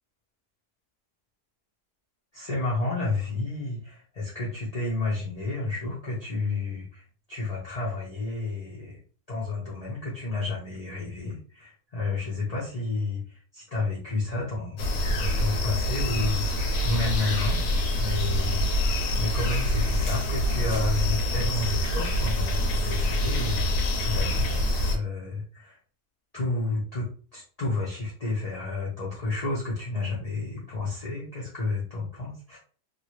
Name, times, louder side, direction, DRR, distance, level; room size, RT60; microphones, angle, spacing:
voice 1, 2.3-7.0 7.3-9.0 9.3-17.6 17.9-23.6 24.0-24.6 24.9-25.8 26.3-32.6, left 3 dB, 35° left, -7 dB, 0.6 m, -31 dB
sound 1, 14.8-25.0, equal, 80° left, 1.3 m, -26 dB
2.9 x 2.5 x 3.0 m, 0.40 s
omnidirectional pair, 1.8 m